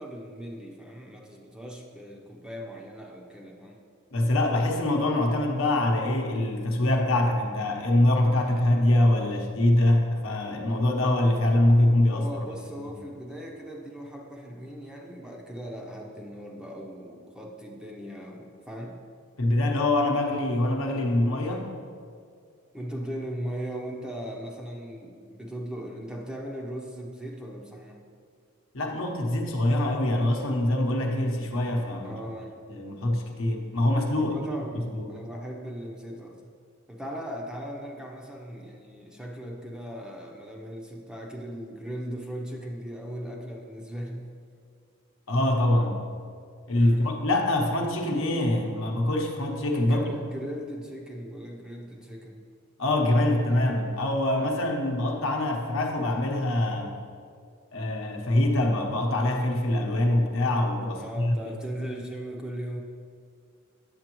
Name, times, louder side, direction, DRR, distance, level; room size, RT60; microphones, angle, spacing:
voice 1, 0.0-3.8 12.1-19.0 22.7-28.0 32.0-32.5 34.2-36.5 36.9-44.3 46.8-47.3 49.8-52.4 60.9-62.8, equal, 5° right, 0 dB, 0.6 m, -38 dB
voice 2, 4.1-12.4 12.8-13.0 19.4-21.7 28.7-32.2 32.7-34.4 34.7-35.1 45.3-46.0 46.7-50.0 52.8-57.0 57.7-61.5, left 1 dB, 70° left, 1 dB, 0.9 m, -24 dB
8.9 x 7.1 x 3.0 m, 2.2 s
head